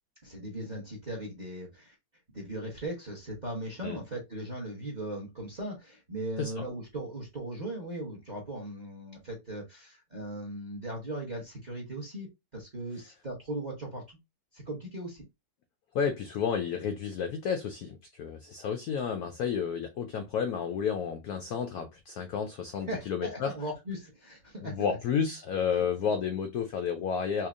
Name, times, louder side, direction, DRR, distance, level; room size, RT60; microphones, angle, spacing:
voice 1, 0.2-1.9 2.3-14.0 14.5-15.2 22.9-25.0, right 1 dB, 35° right, 0.8 m, -38 dB
voice 2, 15.9-23.5 24.6-27.5, left 7 dB, 85° left, 0.8 m, -31 dB
4.4 x 2.7 x 2.4 m
omnidirectional pair, 2.2 m